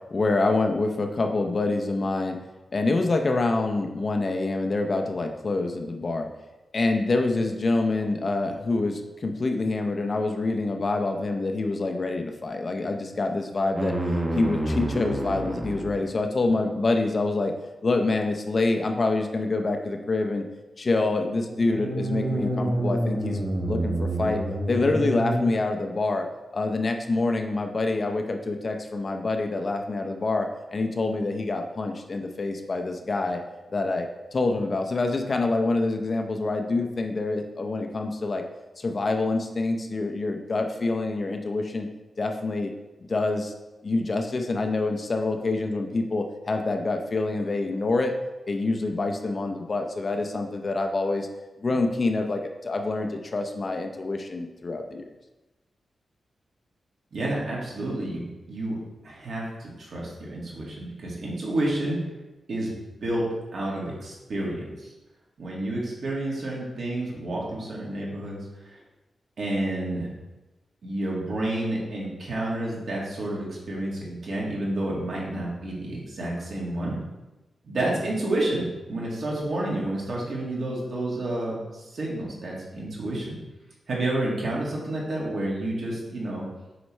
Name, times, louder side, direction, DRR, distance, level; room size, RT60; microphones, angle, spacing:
voice 1, 0.1-2.4 2.7-6.3 6.7-13.9 14.3-17.5 17.8-20.4 20.8-24.4 24.7-26.3 26.5-33.4 33.7-34.1 34.3-38.4 38.8-41.9 42.2-42.7 43.1-43.5 43.8-48.1 48.5-51.3 51.6-55.0, left 3 dB, 35° left, 4 dB, 0.6 m, -26 dB
sound 1, 13.7-16.1 21.5-25.5, right 1 dB, 25° right, 1.0 m, -28 dB
voice 2, 57.1-62.1 62.5-62.7 63.0-63.3 63.5-64.9 65.4-68.8 69.4-70.1 70.8-77.0 77.6-83.4 83.9-86.5, right 1 dB, 60° right, -4 dB, 2.0 m, -30 dB
7.8 x 5.4 x 3.2 m, 1.1 s
wide cardioid pair, 130°, 0 cm